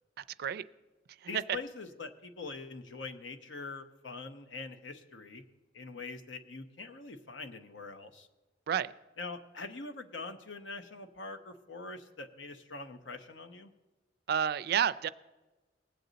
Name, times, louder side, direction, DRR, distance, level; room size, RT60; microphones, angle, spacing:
voice 1, 0.2-0.6 1.2-1.6 8.7-8.9 14.3-15.1, right 8 dB, 60° right, 0.4 m, -30 dB
voice 2, 1.3-5.4 5.7-8.3 9.2-13.7, left 3 dB, 85° left, 0.9 m, -44 dB
19.0 x 7.8 x 4.0 m
head